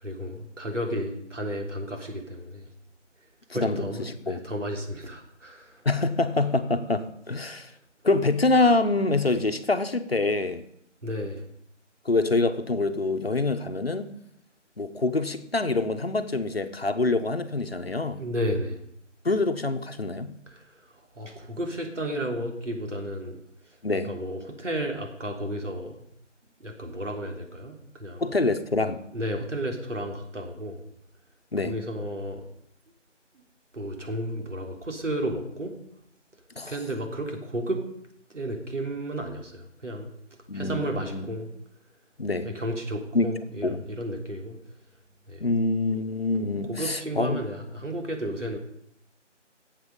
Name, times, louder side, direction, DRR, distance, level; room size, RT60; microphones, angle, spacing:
voice 1, 0.0-2.7 3.5-5.8 11.0-11.4 18.2-18.8 20.5-20.7 21.1-23.4 24.0-26.0 26.6-28.2 29.1-30.8 31.6-32.4 33.7-35.8 36.7-37.9 38.3-40.1 40.5-41.5 42.4-44.6 45.3-45.4 46.4-48.6, equal, 75° right, 2 dB, 3.5 m, -33 dB
voice 2, 3.5-4.4 5.8-7.7 8.0-10.6 12.0-14.1 14.8-18.2 19.2-20.4 23.8-24.1 28.2-29.0 31.5-31.8 36.6-36.7 40.5-41.3 42.2-42.5 43.1-43.3 43.6-43.9 45.4-47.4, left 3 dB, 55° left, 8 dB, 1.2 m, -25 dB
18.0 x 7.9 x 5.4 m, 0.74 s
figure-of-eight pair, 180°, 37 cm